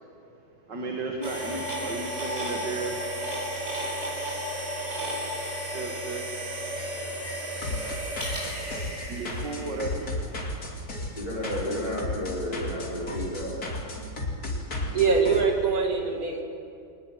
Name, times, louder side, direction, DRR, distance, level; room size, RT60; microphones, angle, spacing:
voice 1, 0.7-3.1 5.7-6.2 9.1-10.4, right 3 dB, 75° right, 1 dB, 2.6 m, -34 dB
sound 1, 1.2-10.1, equal, 20° right, 7.6 m, -33 dB
sound 2, 7.6-15.4, left 1 dB, 55° left, 3.4 m, -34 dB
voice 2, 11.1-13.6, left 1 dB, 20° left, -5 dB, 5.2 m, -32 dB
voice 3, 14.8-16.4, right 5 dB, 55° right, 2 dB, 2.9 m, -23 dB
24.0 x 20.0 x 7.6 m, 2.6 s
omnidirectional pair, 1.9 m